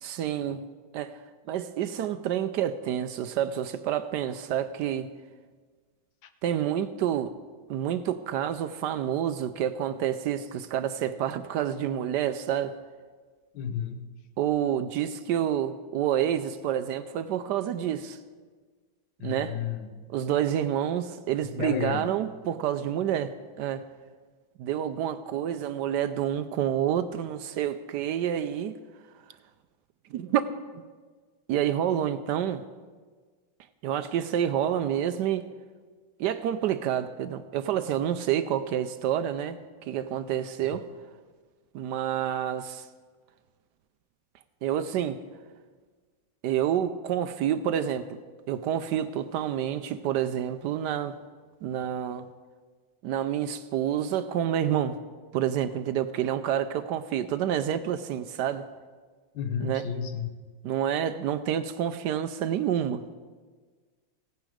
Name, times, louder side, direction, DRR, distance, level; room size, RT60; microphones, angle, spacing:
voice 1, 0.0-0.7 0.9-1.2 1.5-5.1 6.4-7.3 7.7-12.8 14.4-18.2 19.2-19.6 20.1-23.8 24.6-28.8 30.1-30.5 31.5-32.6 33.8-35.4 36.2-40.9 41.7-42.9 44.6-45.2 46.4-48.2 48.5-51.2 51.6-52.3 53.0-54.9 55.3-58.7 59.6-59.9 60.6-63.0, right 10 dB, 75° right, 1.1 m, -28 dB
voice 2, 13.5-14.1 19.2-19.9 21.6-22.1 59.3-60.4, left 7 dB, 80° left, 1.5 m, -32 dB
17.0 x 9.4 x 5.0 m
omnidirectional pair, 2.1 m